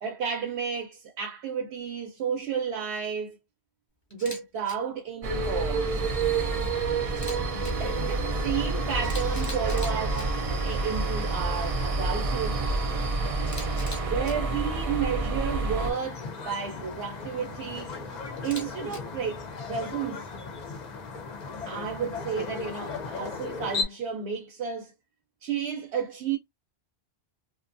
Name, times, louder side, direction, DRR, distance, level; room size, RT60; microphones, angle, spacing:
voice 1, 0.0-3.4 4.1-6.0 7.5-10.3 10.6-12.7 14.0-17.9 18.4-20.3 21.7-24.9 25.4-26.4, right 7 dB, 75° right, 0.8 m, -32 dB
Camera, 4.1-4.4 4.6-4.7 7.1-7.7 8.6-8.7 9.0-10.2 13.4-14.3 18.4-19.0, left 1 dB, 20° left, 0.8 m, -41 dB
sound 1, 5.2-15.9, right 3 dB, 45° right, 0.5 m, -28 dB
sound 2, 15.8-23.8, left 4 dB, 50° left, 0.6 m, -36 dB
2.5 x 2.2 x 2.5 m
omnidirectional pair, 1.1 m